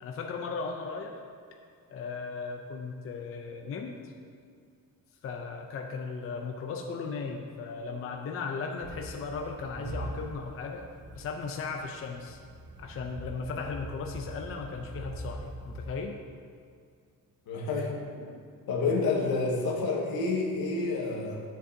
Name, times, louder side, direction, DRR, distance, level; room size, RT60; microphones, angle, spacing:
voice 1, 0.0-1.2 1.9-4.1 5.2-10.9 11.1-12.4 12.8-16.2, left 4 dB, 40° left, 2 dB, 0.6 m, -36 dB
sound 1, 8.8-16.0, right 1 dB, 20° right, 0.5 m, -42 dB
voice 2, 17.5-18.3 18.7-21.4, left 3 dB, 85° left, -2 dB, 1.6 m, -29 dB
10.5 x 7.8 x 2.7 m, 2.2 s
cardioid pair, 145°, 36 cm